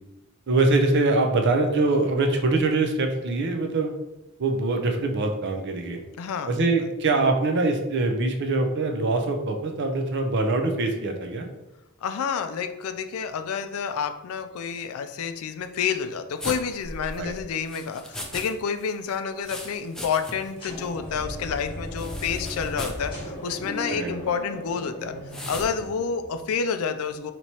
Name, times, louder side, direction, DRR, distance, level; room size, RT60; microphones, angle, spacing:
voice 1, 0.5-3.9 4.4-6.0 6.5-11.5 17.1-17.3 23.9-24.1, right 2 dB, 55° right, 4 dB, 0.5 m, -23 dB
voice 2, 6.2-6.6 12.0-25.1 25.5-27.3, left 6 dB, 85° left, 9 dB, 0.4 m, -29 dB
sound 1, 16.4-18.5 18.8-20.6 20.8-20.9 22.0-23.1 23.6-23.8 25.3-25.7, left 1 dB, 5° left, 0.4 m, -38 dB
sound 2, 20.6-26.5, equal, 25° left, 1.2 m, -37 dB
4.5 x 2.9 x 2.8 m, 1.0 s
head